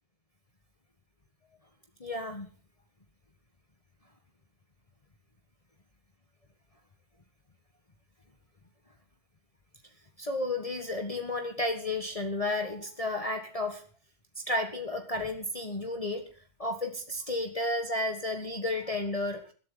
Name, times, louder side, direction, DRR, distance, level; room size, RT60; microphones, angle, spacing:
voice 1, 2.0-2.5 10.2-13.8 14.4-16.3 16.6-19.5, left 2 dB, 30° left, 5 dB, 1.6 m, -32 dB
21.0 x 12.0 x 3.9 m, 0.37 s
omnidirectional pair, 1.3 m